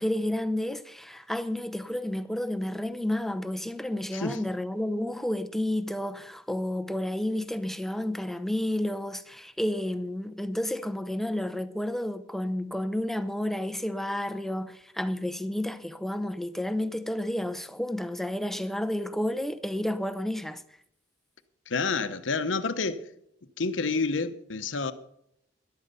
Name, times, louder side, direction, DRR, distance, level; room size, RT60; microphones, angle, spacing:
voice 1, 0.0-20.6, left 1 dB, ahead, 0.7 m, -31 dB
voice 2, 21.7-23.0 23.6-24.9, left 4 dB, 80° left, 0.9 m, -29 dB
13.5 x 11.5 x 5.6 m
head